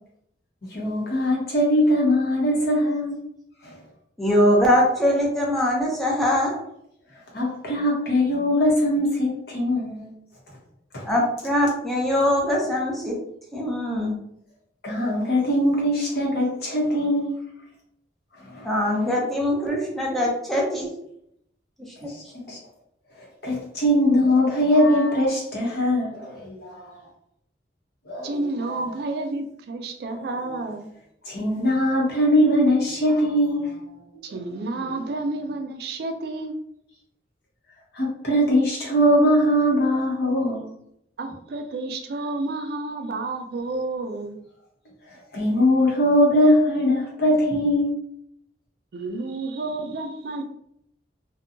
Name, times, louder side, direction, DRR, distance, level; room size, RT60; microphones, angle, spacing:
voice 1, 0.7-3.2 3.6-3.8 7.3-10.1 10.9-11.1 14.8-17.3 18.5-19.0 22.0-22.1 22.5-22.6 23.2-27.0 28.1-28.3 31.3-33.7 37.9-40.7 45.3-48.0, equal, 60° left, -3 dB, 0.9 m, -21 dB
voice 2, 4.2-6.6 11.0-13.2 13.5-14.2 18.6-20.9 22.0-22.1, equal, ahead, -4 dB, 0.5 m, -22 dB
voice 3, 28.2-30.9 34.2-36.6 41.2-44.4 48.9-50.4, right 2 dB, 60° right, 5 dB, 0.3 m, -30 dB
2.7 x 2.2 x 2.5 m, 0.75 s
head